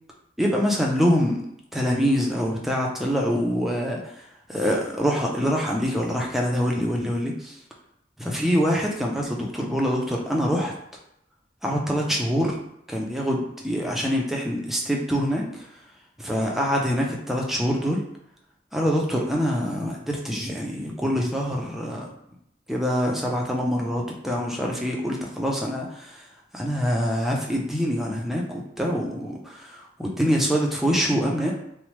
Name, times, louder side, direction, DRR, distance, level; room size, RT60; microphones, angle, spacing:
voice 1, 0.4-1.4 1.7-4.0 4.5-7.5 8.2-10.7 11.6-12.6 12.9-15.4 16.3-18.0 18.7-22.1 22.7-26.2 26.5-31.5, equal, ahead, -1 dB, 0.4 m, -25 dB
2.9 x 2.0 x 3.0 m, 0.77 s
head